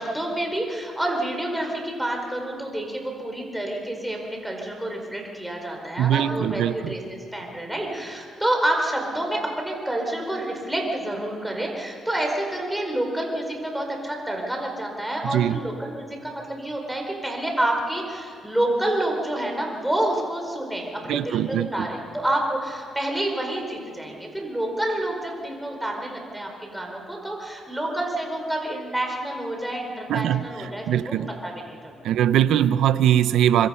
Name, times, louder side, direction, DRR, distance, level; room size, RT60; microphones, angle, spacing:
voice 1, 0.0-31.1 31.4-32.0, right 1 dB, 5° right, 1 dB, 4.7 m, -28 dB
voice 2, 6.0-6.9 15.2-15.6 21.1-21.9 30.1-31.3 32.0-33.7, right 11 dB, 80° right, 14 dB, 0.7 m, -22 dB
25.0 x 23.5 x 5.8 m, 2.3 s
cardioid pair, 90°, 0 cm